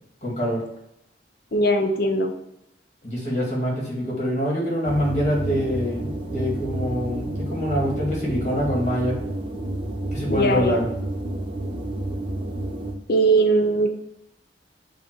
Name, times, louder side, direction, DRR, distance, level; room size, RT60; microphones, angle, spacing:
voice 1, 0.2-0.6 3.0-9.2 10.1-10.9, equal, 40° left, -4 dB, 2.2 m, -25 dB
voice 2, 1.5-2.3 10.3-10.8 13.1-13.9, right 2 dB, 55° left, 4 dB, 0.7 m, -20 dB
sound 1, 4.8-12.9, right 1 dB, 30° right, 0.9 m, -30 dB
7.4 x 2.8 x 4.7 m, 0.83 s
head